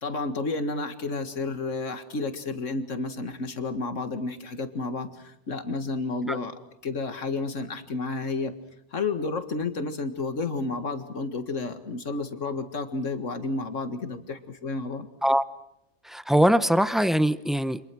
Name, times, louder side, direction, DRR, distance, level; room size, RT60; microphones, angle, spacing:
voice 1, 0.0-6.6 6.8-8.5 8.9-15.1, left 3 dB, 85° left, 9 dB, 2.2 m, -31 dB
voice 2, 16.0-17.8, equal, ahead, 13 dB, 0.6 m, -22 dB
29.0 x 26.5 x 6.2 m, 0.77 s
omnidirectional pair, 1.3 m